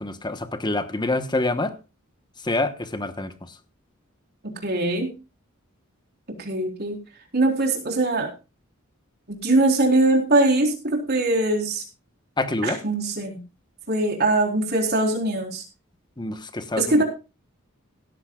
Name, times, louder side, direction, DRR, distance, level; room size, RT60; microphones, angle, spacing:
voice 1, 0.0-1.7 2.4-3.3 12.4-12.8 16.2-17.0, left 2 dB, 20° left, 10 dB, 1.1 m, -26 dB
voice 2, 4.4-5.1 6.4-7.0 7.3-8.3 9.3-11.8 12.6-13.4 13.9-15.6 16.8-17.0, right 2 dB, 50° right, 1 dB, 4.1 m, -22 dB
16.5 x 14.0 x 2.4 m, 0.30 s
head